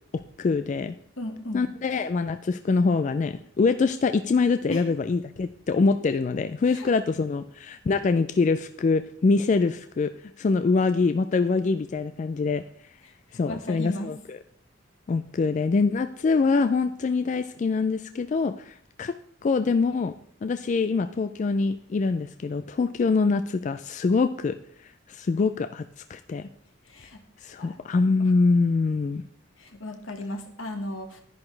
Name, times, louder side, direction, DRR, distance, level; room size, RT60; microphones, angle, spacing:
voice 1, 0.4-1.0 1.5-10.1 10.4-12.6 13.3-14.4 15.1-19.1 19.4-20.1 20.4-24.6 25.1-25.8 26.1-26.5 27.4-29.2, left 4 dB, 40° left, 10 dB, 0.3 m, -24 dB
voice 2, 1.2-1.7 4.7-4.8 6.7-6.9 13.3-14.1 26.8-27.2 27.6-27.8 29.6-31.2, left 1 dB, 85° left, 5 dB, 1.5 m, -36 dB
10.5 x 10.5 x 3.3 m, 0.64 s
head